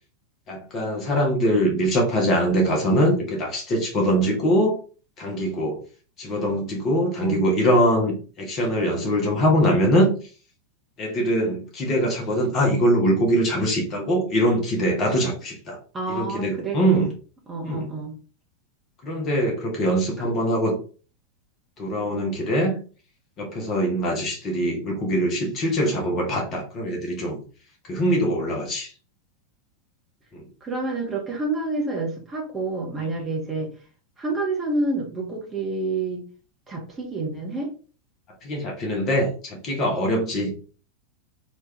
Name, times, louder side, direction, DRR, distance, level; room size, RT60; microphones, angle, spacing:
voice 1, 0.5-4.8 5.2-5.8 6.2-10.1 11.0-15.8 16.1-17.1 17.6-17.9 19.0-20.8 21.8-22.8 23.4-27.4 27.9-28.9 30.3-30.5 33.0-33.1 38.4-40.5, equal, 30° left, 1.6 m, -23 dB
voice 2, 15.9-17.0 17.5-18.1 20.2-20.3 30.6-33.7 34.2-36.3 36.7-37.7, right 2 dB, 20° right, 1.5 m, -28 dB
4.5 x 3.1 x 3.0 m
figure-of-eight pair, 90°, 0 cm